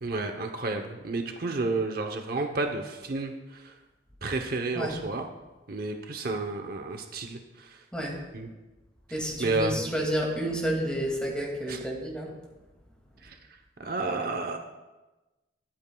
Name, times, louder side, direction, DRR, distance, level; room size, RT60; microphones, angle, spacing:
voice 1, 0.0-3.7 4.2-5.3 5.7-7.8 8.3-8.5 9.4-9.9 11.7-11.8 13.2-13.4 13.8-14.6, right 3 dB, 55° right, 4 dB, 0.8 m, -31 dB
voice 2, 9.1-12.3, right 1 dB, 5° left, -1 dB, 2.2 m, -30 dB
21.5 x 8.8 x 2.3 m, 1.1 s
head